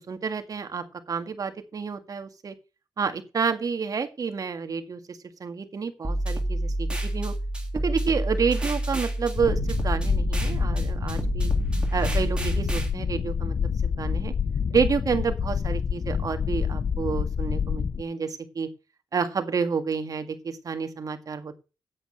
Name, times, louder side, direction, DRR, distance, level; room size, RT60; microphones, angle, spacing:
voice 1, 0.1-2.5 3.0-7.3 7.8-11.5 11.9-13.5 13.8-14.3 14.7-18.7 19.1-21.6, right 5 dB, 50° right, 7 dB, 1.9 m, -29 dB
sound 1, 6.0-12.9, right 1 dB, 15° right, 3.2 m, -28 dB
sound 2, 9.3-18.0, left 6 dB, 45° left, 0.5 m, -27 dB
8.7 x 8.2 x 6.4 m, 0.31 s
cardioid pair, 85°, 8 cm